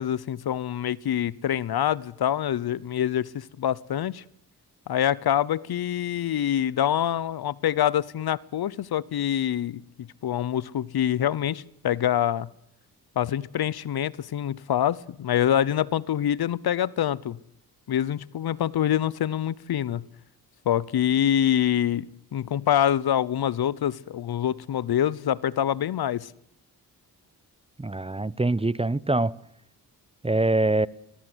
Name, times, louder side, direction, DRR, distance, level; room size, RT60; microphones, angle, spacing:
voice 1, 0.0-4.2 4.9-12.5 13.2-17.4 17.9-20.1 20.6-26.3, left 10 dB, 70° left, 0.9 m, -25 dB
voice 2, 27.8-29.3 30.2-30.9, right 2 dB, 15° right, 0.9 m, -24 dB
23.0 x 21.5 x 8.1 m
supercardioid pair, 50°, 39 cm